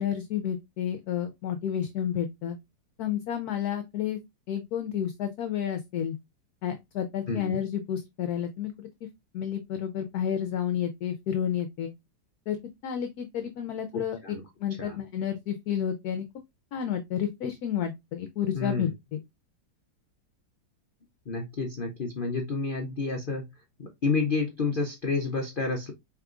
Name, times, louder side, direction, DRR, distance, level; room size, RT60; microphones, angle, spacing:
voice 1, 0.0-2.6 3.0-4.2 4.5-6.1 6.6-8.9 9.3-11.9 12.5-12.6 12.8-14.2 14.6-16.2 16.7-19.2, left 9 dB, 70° left, 1.0 m, -31 dB
voice 2, 7.3-7.6 13.9-14.4 14.8-15.0 18.5-18.9 21.3-23.5 23.8-25.9, left 4 dB, 90° left, 0.4 m, -30 dB
4.7 x 3.5 x 2.4 m
omnidirectional pair, 1.9 m